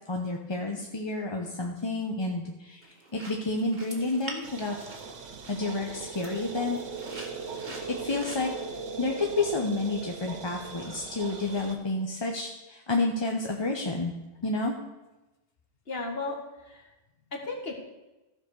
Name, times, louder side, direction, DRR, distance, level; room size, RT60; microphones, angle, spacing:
voice 1, 0.1-4.8 5.5-6.8 7.9-8.5 9.0-14.1 14.4-14.8, left 2 dB, 25° left, 1 dB, 0.8 m, -30 dB
sound 1, 2.8-8.6, right 1 dB, 35° right, 1.8 m, -46 dB
sound 2, 4.4-11.8, right 4 dB, 70° right, 1.3 m, -39 dB
voice 2, 15.9-16.9 17.3-17.8, left 3 dB, 50° left, 1 dB, 1.9 m, -35 dB
14.5 x 5.0 x 6.5 m, 1.0 s
omnidirectional pair, 1.3 m